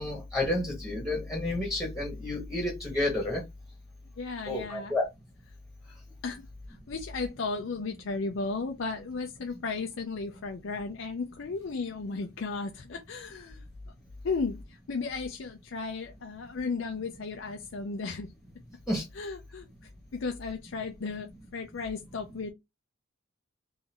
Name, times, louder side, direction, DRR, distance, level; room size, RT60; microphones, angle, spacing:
voice 1, 0.0-3.4 4.5-5.1 18.9-19.0, left 2 dB, ahead, 1.4 m, -30 dB
voice 2, 4.2-4.9 6.2-13.6 14.2-18.3 19.1-19.7 20.1-22.5, left 4 dB, 65° left, 0.5 m, -35 dB
3.7 x 2.6 x 3.0 m
head